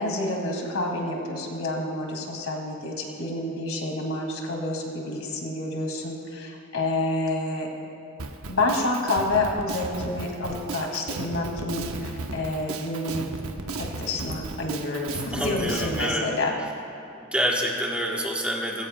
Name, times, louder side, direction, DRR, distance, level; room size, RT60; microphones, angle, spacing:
voice 1, 0.0-7.7 8.5-13.2 13.8-16.5, left 2 dB, 70° left, 0 dB, 2.2 m, -28 dB
Drum kit, 8.2-16.1, right 3 dB, 80° right, 0.9 m, -35 dB
voice 2, 15.1-16.3 17.2-18.9, equal, 5° right, -1 dB, 1.2 m, -27 dB
20.0 x 16.0 x 2.2 m, 2.8 s
head